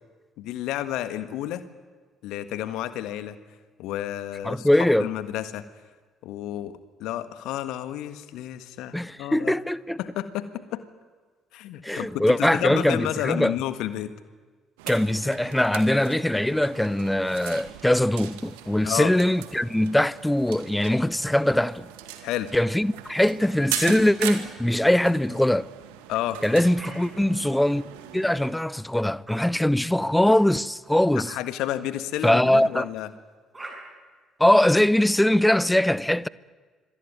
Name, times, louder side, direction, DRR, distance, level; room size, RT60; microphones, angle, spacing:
voice 1, 0.4-1.6 2.2-3.4 3.8-5.6 6.2-9.6 10.0-10.8 11.5-14.1 18.8-19.1 22.2-22.5 26.1-26.4 31.1-33.1, left 12 dB, 60° left, 1.6 m, -31 dB
voice 2, 4.4-5.1 8.9-10.0 11.8-13.5 14.9-21.9 22.5-25.7 26.4-27.8 28.1-31.3 32.2-32.9 34.4-36.3, left 1 dB, 5° left, 0.8 m, -22 dB
sound 1, 14.8-28.5, right 12 dB, 70° right, 2.1 m, -39 dB
sound 2, 26.7-27.0 27.9-28.5 29.3-29.4 30.3-30.4 31.3-31.5 32.9-33.1 33.5-33.7, right 2 dB, 20° right, 7.8 m, -43 dB
26.0 x 24.5 x 9.4 m
figure-of-eight pair, 50°, 0 cm